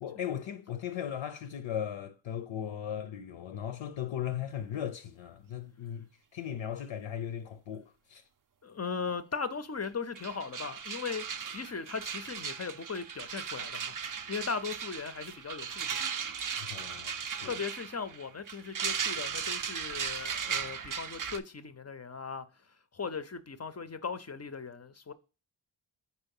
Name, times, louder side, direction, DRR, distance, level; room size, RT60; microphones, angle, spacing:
voice 1, 0.0-8.2 16.6-17.6, left 9 dB, 85° left, 0.5 m, -37 dB
voice 2, 8.6-11.2 11.5-16.1 17.4-22.5 22.9-25.1, left 5 dB, 35° left, 0.4 m, -38 dB
sound 1, 9.8-9.9 10.1-21.4, right 7 dB, 45° right, 0.4 m, -37 dB
4.5 x 4.2 x 5.3 m
wide cardioid pair, 80°, 46 cm